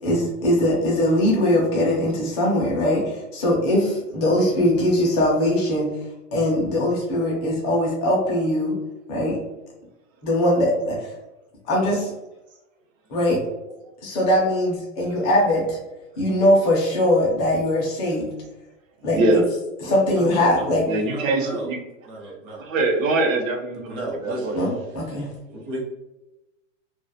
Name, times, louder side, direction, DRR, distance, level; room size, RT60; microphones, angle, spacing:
voice 1, 0.0-5.9 6.3-8.7 9.1-9.4 10.2-11.1 11.7-12.1 13.1-13.4 14.0-15.8 16.2-18.3 19.0-19.4 19.8-20.8 24.5-25.3, left 1 dB, 20° left, -3 dB, 0.3 m, -21 dB
voice 2, 19.1-19.4 20.9-21.8 22.6-23.9 24.2-24.6, right 2 dB, 80° right, 1 dB, 0.7 m, -22 dB
voice 3, 19.8-21.7 22.1-22.7 23.8-24.6 25.5-25.8, right 1 dB, 40° right, -1 dB, 0.7 m, -34 dB
2.2 x 2.1 x 2.7 m, 0.98 s
hypercardioid pair, 140°, 39 cm